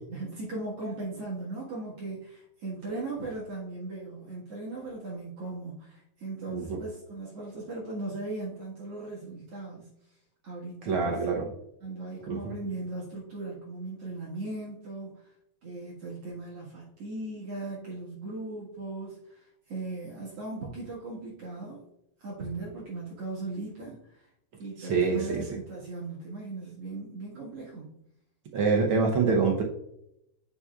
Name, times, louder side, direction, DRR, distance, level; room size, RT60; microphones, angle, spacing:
voice 1, 0.1-9.9 10.4-11.2 11.8-15.3 15.6-21.8 22.2-24.3 24.6-27.9, right 2 dB, 55° right, -6 dB, 2.5 m, -38 dB
voice 2, 10.8-11.5 12.3-12.4 24.8-25.4 28.5-29.6, right 4 dB, 70° right, 1 dB, 1.2 m, -25 dB
9.8 x 5.8 x 2.4 m, 0.80 s
omnidirectional pair, 3.4 m